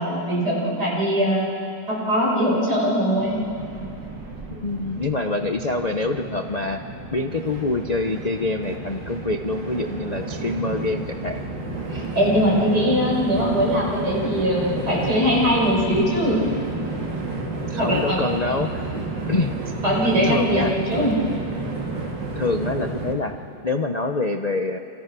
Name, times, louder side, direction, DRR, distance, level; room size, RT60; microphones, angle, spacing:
voice 1, 0.0-1.4 1.9-3.4 11.9-16.4 17.8-18.2 19.8-21.1, equal, 65° right, -4 dB, 6.9 m, -21 dB
Train, 3.2-23.1, right 3 dB, 85° right, 3.3 m, -31 dB
voice 2, 4.5-6.8 7.1-11.4 17.7-18.9 19.3-19.5 20.2-21.1 22.4-23.4 23.6-24.8, left 3 dB, 35° left, 5 dB, 0.7 m, -26 dB
30.0 x 25.5 x 6.2 m, 2.6 s
omnidirectional pair, 1.9 m